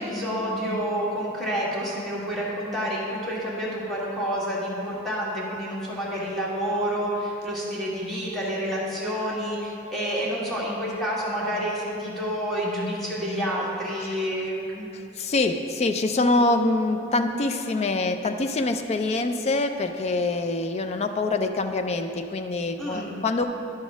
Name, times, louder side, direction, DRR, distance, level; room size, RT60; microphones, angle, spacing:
voice 1, 0.0-14.9 22.8-23.1, equal, ahead, -7 dB, 1.7 m, -29 dB
voice 2, 15.2-23.5, left 2 dB, 35° left, 7 dB, 0.3 m, -25 dB
10.5 x 4.0 x 6.0 m, 2.7 s
head